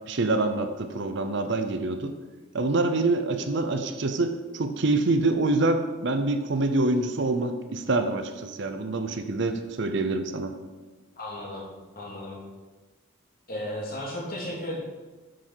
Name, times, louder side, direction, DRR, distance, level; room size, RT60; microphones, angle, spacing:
voice 1, 0.1-2.1 2.5-10.5, right 2 dB, 60° right, 8 dB, 0.7 m, -26 dB
voice 2, 11.2-11.7 11.9-12.4 13.5-14.8, left 1 dB, 45° left, -4 dB, 2.5 m, -34 dB
9.2 x 6.2 x 4.5 m, 1.2 s
head